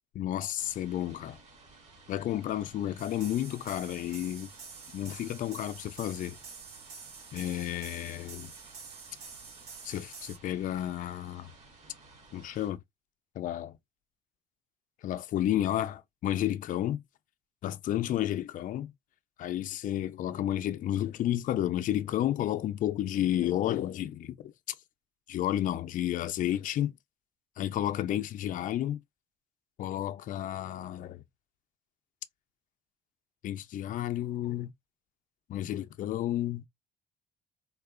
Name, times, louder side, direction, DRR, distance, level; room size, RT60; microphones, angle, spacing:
voice 1, 0.2-1.4 2.1-4.5 4.9-6.4 7.3-8.5 9.8-11.5 12.3-12.8 13.4-13.8 15.0-17.0 17.6-18.9 19.4-24.5 25.3-26.9 27.6-29.0 29.8-31.2 33.4-34.7 35.5-36.6, left 12 dB, 50° left, 0.4 m, -31 dB
sound 1, 0.6-12.7, right 3 dB, 45° right, 1.8 m, -56 dB
sound 2, 3.0-10.4, right 5 dB, 85° right, 2.0 m, -48 dB
3.6 x 2.3 x 2.3 m
cardioid pair, 110°, 17 cm